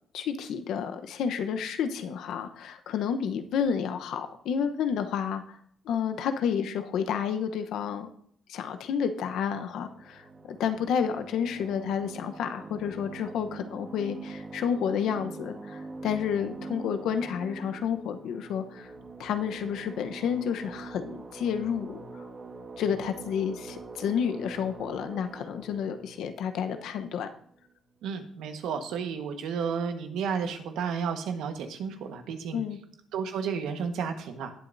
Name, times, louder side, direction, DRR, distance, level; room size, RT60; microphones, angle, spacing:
voice 1, 0.1-5.6 5.8-8.1 8.5-18.9 19.2-22.0 22.8-27.3 32.5-32.8, left 7 dB, 80° left, 8 dB, 0.9 m, -30 dB
sound 1, 9.4-27.6, right 3 dB, 35° right, 1.6 m, -44 dB
voice 2, 28.0-32.6 33.1-34.5, right 6 dB, 85° right, 6 dB, 1.3 m, -32 dB
18.0 x 7.9 x 2.7 m, 0.65 s
cardioid pair, 90°, 0 cm